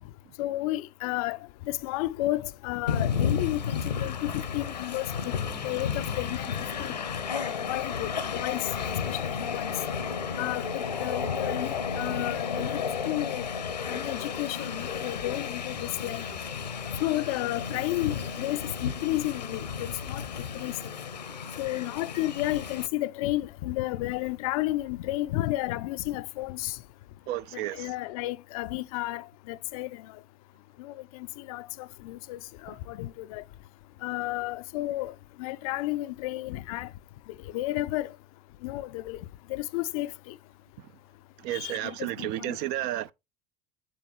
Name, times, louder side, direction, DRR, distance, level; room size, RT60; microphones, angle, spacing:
voice 1, 0.4-1.4 1.7-5.3 5.6-6.5 6.8-7.0 7.5-9.7 10.4-12.8 13.0-13.5 13.9-16.2 17.0-20.3 20.5-20.7 21.6-26.8 27.7-30.0 30.8-33.4 34.0-36.9 37.5-38.1 38.6-39.2 39.5-40.3 41.5-42.6, left 17 dB, 60° left, 0.5 m, -32 dB
Train, 2.9-22.9, left 6 dB, 80° left, 0.9 m, -33 dB
sound 1, 5.2-9.8, left 3 dB, 5° left, 0.6 m, -51 dB
voice 2, 27.3-27.9 32.7-32.8 41.4-43.1, right 14 dB, 50° right, 0.5 m, -32 dB
7.8 x 6.9 x 3.3 m
figure-of-eight pair, 70°, 21 cm